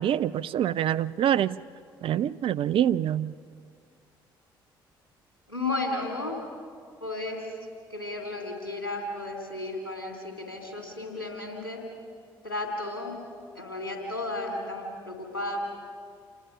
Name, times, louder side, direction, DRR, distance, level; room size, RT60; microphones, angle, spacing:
voice 1, 0.0-1.6 2.0-3.3, right 10 dB, 50° right, 14 dB, 0.5 m, -25 dB
voice 2, 5.5-6.4 7.0-7.5 7.9-11.8 12.4-13.2 13.5-15.6, left 2 dB, 90° left, 2 dB, 2.7 m, -33 dB
28.0 x 21.0 x 6.2 m, 2.2 s
figure-of-eight pair, 45°, 12 cm